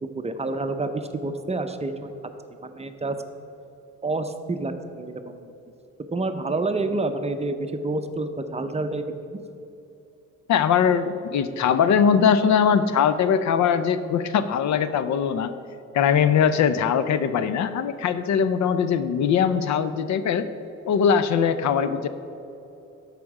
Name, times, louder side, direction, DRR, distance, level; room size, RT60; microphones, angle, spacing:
voice 1, 0.0-2.1 2.6-3.2 4.0-5.5 6.1-9.0 9.3-9.4, right 2 dB, 20° right, 7 dB, 0.6 m, -28 dB
voice 2, 10.5-15.5 15.9-20.5 20.9-22.1, left 7 dB, 65° left, 12 dB, 0.6 m, -21 dB
12.5 x 5.0 x 4.8 m, 3.0 s
cardioid pair, 90°, 30 cm